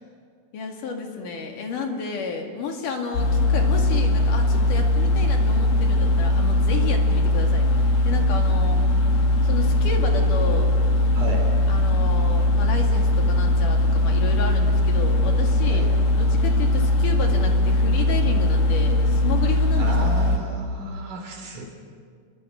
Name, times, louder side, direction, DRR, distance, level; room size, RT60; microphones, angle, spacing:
voice 1, 0.5-8.8 9.4-10.7 11.7-15.9 16.2-20.0, left 4 dB, 65° left, 2 dB, 3.6 m, -31 dB
sound 1, 3.1-20.4, left 1 dB, 90° left, 4.1 m, -20 dB
voice 2, 11.1-11.6 15.7-15.9 19.8-21.7, right 1 dB, 65° right, 2 dB, 5.3 m, -33 dB
28.0 x 23.5 x 6.4 m, 2.1 s
omnidirectional pair, 4.1 m